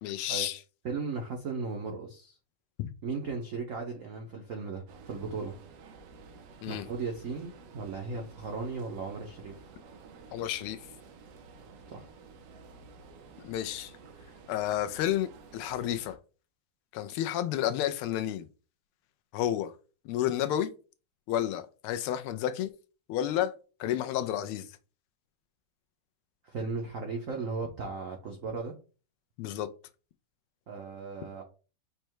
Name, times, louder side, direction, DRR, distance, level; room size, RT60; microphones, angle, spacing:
voice 1, 0.0-0.6 2.8-2.9 6.6-6.8 10.3-10.8 13.4-13.9 14.5-16.2 16.9-18.5 19.3-19.7 20.0-20.7 21.3-22.7 23.1-23.5 23.8-24.7 29.4-29.7, left 11 dB, 80° left, 1.5 m, -31 dB
voice 2, 0.8-2.4 3.0-5.5 6.7-9.6 11.9-12.1 26.4-28.7 30.7-31.4, right 4 dB, 90° right, 0.7 m, -36 dB
sound 1, 4.9-16.2, right 4 dB, 70° right, 1.1 m, -52 dB
5.4 x 2.2 x 4.5 m
omnidirectional pair, 2.4 m